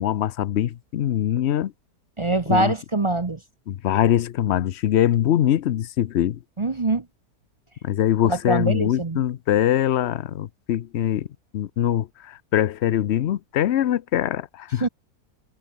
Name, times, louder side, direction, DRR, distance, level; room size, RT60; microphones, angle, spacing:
voice 1, 0.0-1.7 2.5-2.7 3.7-6.4 7.8-11.3 11.5-14.9, left 11 dB, 60° left, 0.7 m, -23 dB
voice 2, 2.2-3.4 6.6-7.1 8.2-9.2 14.8-14.9, right 2 dB, 30° right, 0.6 m, -23 dB
omnidirectional pair, 1.7 m